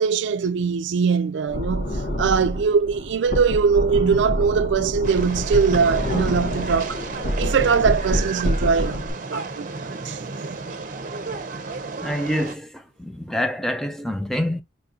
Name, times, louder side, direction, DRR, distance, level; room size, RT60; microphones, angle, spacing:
voice 1, 0.0-7.0 7.4-9.7 10.0-10.6, right 5 dB, 80° right, 0.4 m, -22 dB
sound 1, 1.5-9.1, equal, 75° left, 2.3 m, -27 dB
sound 2, 5.0-12.5, right 4 dB, 45° right, 0.6 m, -33 dB
voice 2, 12.0-14.6, equal, 5° left, 0.4 m, -26 dB
4.4 x 2.8 x 3.6 m
head